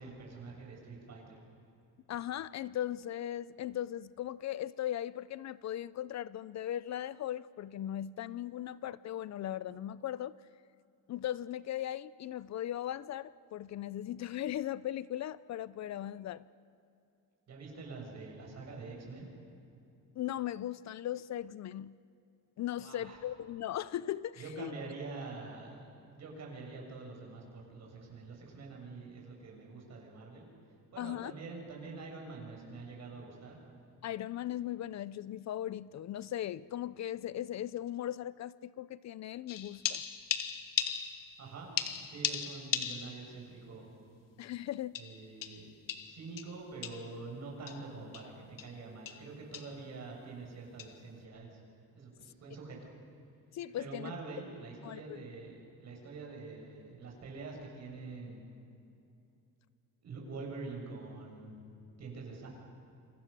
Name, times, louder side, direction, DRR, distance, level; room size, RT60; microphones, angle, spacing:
voice 1, 0.0-1.4 17.5-19.3 22.8-23.2 24.4-30.5 30.9-33.6 41.4-41.7 42.0-43.9 44.9-45.7 46.0-51.6 52.0-52.8 53.8-58.4 60.0-61.6 62.0-62.5, right 3 dB, 50° right, -1 dB, 6.9 m, -46 dB
voice 2, 2.1-10.3 11.1-16.5 20.2-21.9 22.6-24.7 31.0-31.3 34.0-40.0 44.4-45.0 53.5-54.1 54.8-55.2, left 12 dB, 55° left, 18 dB, 0.5 m, -38 dB
sound 1, 39.5-41.4 41.8-43.3 43.7-43.8 44.9-47.2 47.7-47.8 48.1-48.3 48.6-48.8 49.1-49.3 49.5-49.8 50.8-51.0, left 9 dB, 70° left, 1.6 m, -37 dB
27.5 x 26.5 x 6.8 m, 2.7 s
cardioid pair, 160°, 34 cm